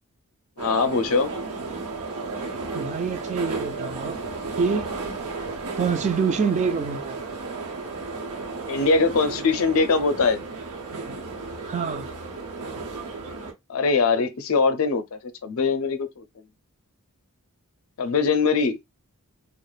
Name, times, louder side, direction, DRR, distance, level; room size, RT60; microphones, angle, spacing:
voice 1, 0.6-1.3 8.7-10.4 13.7-16.2 18.0-18.8, left 4 dB, 65° left, 0.5 m, -22 dB
sound 1, 0.6-13.5, right 3 dB, 90° right, 0.8 m, -33 dB
voice 2, 2.7-4.2 4.6-4.9 5.8-7.2 11.6-12.1, right 5 dB, 30° right, 0.3 m, -26 dB
2.4 x 2.1 x 3.1 m
head